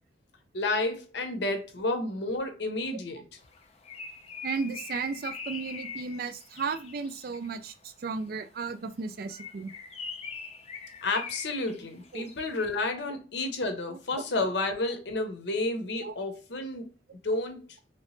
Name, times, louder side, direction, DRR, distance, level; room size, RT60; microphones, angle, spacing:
voice 1, 0.5-3.2 11.0-16.9 17.2-17.6, left 2 dB, 70° left, 0.8 m, -31 dB
Bird, 3.5-7.6 9.2-12.7, left 5 dB, 35° left, 0.5 m, -42 dB
voice 2, 4.4-9.7 12.1-12.2 13.9-14.0 16.0-16.2, right 5 dB, 55° right, 0.3 m, -34 dB
3.1 x 2.9 x 3.1 m
head